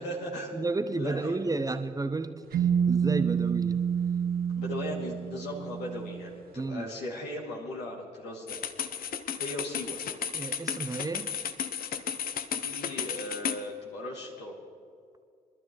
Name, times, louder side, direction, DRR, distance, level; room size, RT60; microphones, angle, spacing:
voice 1, 0.0-0.5 1.0-1.7 4.5-8.6 9.4-10.0 12.5-14.6, left 1 dB, 75° left, -2 dB, 2.7 m, -38 dB
voice 2, 0.5-3.8 6.6-6.9 10.3-11.3, right 3 dB, 20° right, 9 dB, 0.8 m, -32 dB
sound 1, 2.5-6.4, right 7 dB, 60° right, 1.0 m, -28 dB
sound 2, 8.5-13.6, left 8 dB, 55° left, 0.8 m, -34 dB
23.0 x 12.5 x 3.2 m, 2.2 s
hypercardioid pair, 45°, 18 cm